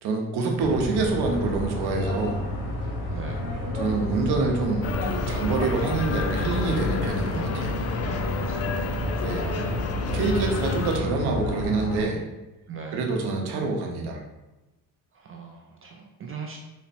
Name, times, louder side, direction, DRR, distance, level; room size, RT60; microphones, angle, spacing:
voice 1, 0.0-2.4 3.7-7.8 9.2-9.5 10.1-12.2 12.9-14.2, right 3 dB, 80° right, 1 dB, 0.8 m, -26 dB
sound 1, 0.6-12.1, left 1 dB, 85° left, 0.9 m, -30 dB
voice 2, 3.1-3.5 8.1-8.9 12.7-13.1 15.1-16.6, right 4 dB, 35° right, 1 dB, 0.4 m, -39 dB
sound 2, 4.8-11.0, left 5 dB, 40° left, 0.4 m, -32 dB
sound 3, 4.9-10.5, left 1 dB, 25° left, 1.1 m, -41 dB
4.1 x 2.2 x 4.1 m, 1.0 s
cardioid pair, 105°, 39 cm